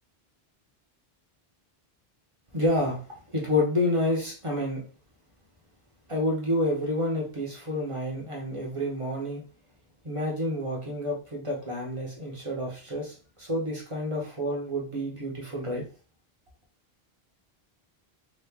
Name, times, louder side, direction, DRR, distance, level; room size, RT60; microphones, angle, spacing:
voice 1, 2.5-3.0 3.3-4.8 6.1-9.4 10.0-15.8, left 1 dB, 35° right, -2 dB, 0.8 m, -29 dB
2.9 x 2.4 x 3.5 m, 0.38 s
omnidirectional pair, 1.0 m